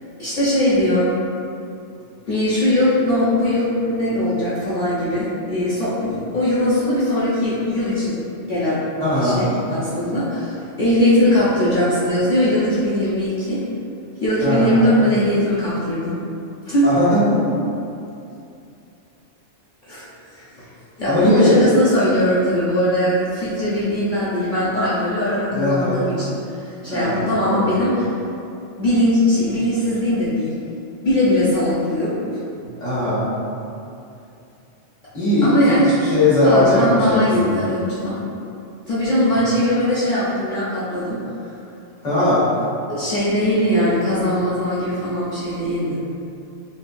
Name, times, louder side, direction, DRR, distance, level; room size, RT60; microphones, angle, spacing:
voice 1, 0.2-1.1 2.3-8.8 9.1-13.6 14.2-16.2 16.6-16.8 19.9-20.1 20.3-20.7 21.0-28.1 28.8-30.5 31.0-32.1 35.4-35.9 36.4-38.2 38.9-41.2 42.9-46.0, left 1 dB, 55° left, -10 dB, 0.6 m, -20 dB
voice 2, 9.0-9.4 14.4-14.8 16.8-17.5 21.0-21.6 25.5-26.0 26.9-27.2 27.5-27.7 32.8-33.3 35.1-37.6 42.0-42.4, left 2 dB, 75° left, -12 dB, 1.6 m, -18 dB
3.7 x 2.3 x 2.5 m, 2.6 s
omnidirectional pair, 1.3 m